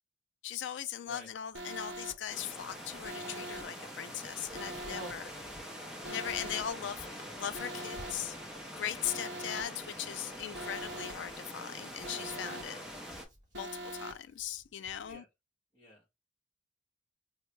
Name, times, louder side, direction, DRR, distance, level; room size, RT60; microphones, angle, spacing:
voice 1, 0.4-5.3 6.1-8.4 8.7-12.8 13.5-15.2, left 10 dB, 75° left, 0.3 m, -39 dB
Hands, 1.3-15.1, equal, 20° right, 1.4 m, -60 dB
Alarm, 1.5-2.1 3.0-3.6 4.5-5.1 6.0-6.6 7.5-8.1 9.0-9.6 10.5-11.1 12.0-12.6 13.5-14.1, right 1 dB, 65° right, 0.7 m, -42 dB
sound 1, 2.3-13.3, equal, 5° right, 0.5 m, -45 dB
voice 2, 12.4-13.0 15.0-15.3 15.7-16.0, equal, 25° left, 1.4 m, -50 dB
3.8 x 2.2 x 3.0 m
head